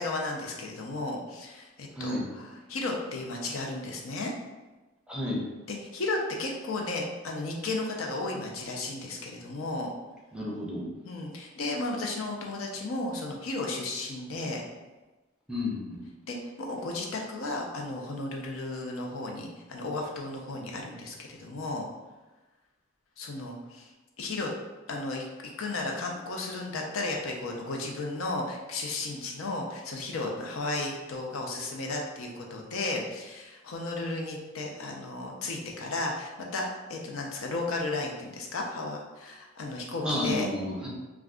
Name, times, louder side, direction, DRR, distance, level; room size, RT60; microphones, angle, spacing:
voice 1, 0.0-4.3 5.7-9.9 11.0-14.6 16.3-21.9 23.2-23.9 24.2-24.5 24.9-25.3 25.6-40.5, left 2 dB, 85° left, 0 dB, 0.5 m, -34 dB
voice 2, 2.0-2.3 5.1-5.4 10.3-10.9 15.5-16.0 40.0-40.9, left 1 dB, 5° right, -4 dB, 0.5 m, -31 dB
2.4 x 2.2 x 3.5 m, 1.2 s
head